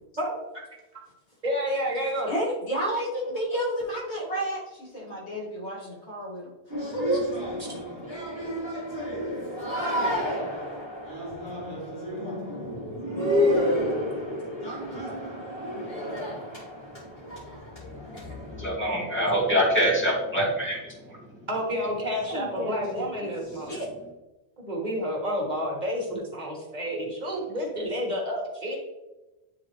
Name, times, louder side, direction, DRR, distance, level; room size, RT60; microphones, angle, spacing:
voice 1, 1.4-2.3 21.5-23.8 24.6-28.8, equal, 40° right, -2 dB, 1.6 m, -30 dB
voice 2, 2.3-6.5 6.9-7.2 22.2-23.9, equal, 85° left, -5 dB, 2.3 m, -31 dB
sound 1, 6.7-18.6, equal, 60° left, 2.3 m, -30 dB
voice 3, 18.5-21.2, equal, 10° left, -6 dB, 2.1 m, -25 dB
9.4 x 3.8 x 3.1 m, 1.1 s
omnidirectional pair, 1.1 m